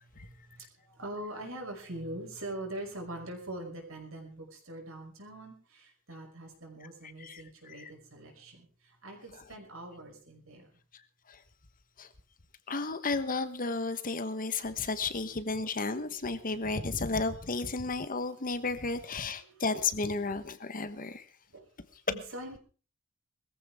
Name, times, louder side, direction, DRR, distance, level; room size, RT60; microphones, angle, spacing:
voice 1, 0.0-10.7 19.5-19.6 21.0-21.1 21.5-21.7 22.1-22.6, right 1 dB, 80° right, 2 dB, 5.7 m, -43 dB
voice 2, 7.0-7.9 9.3-9.5 11.3-11.4 12.0-12.1 12.7-21.3, left 3 dB, 40° left, 11 dB, 1.2 m, -33 dB
21.5 x 14.5 x 3.6 m, 0.38 s
head